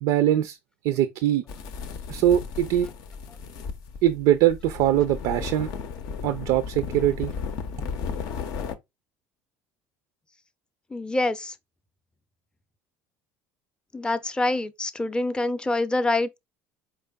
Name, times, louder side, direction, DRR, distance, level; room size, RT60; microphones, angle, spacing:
voice 1, 0.0-0.6 0.8-1.4 2.1-2.9 4.0-5.7 6.2-7.3, right 12 dB, 70° right, 0.4 m, -22 dB
sound 1, 1.5-8.8, left 5 dB, 65° left, 0.5 m, -35 dB
voice 2, 10.9-11.5 13.9-16.4, left 2 dB, 15° left, 0.5 m, -26 dB
4.6 x 3.3 x 2.2 m
supercardioid pair, 80°, 7 cm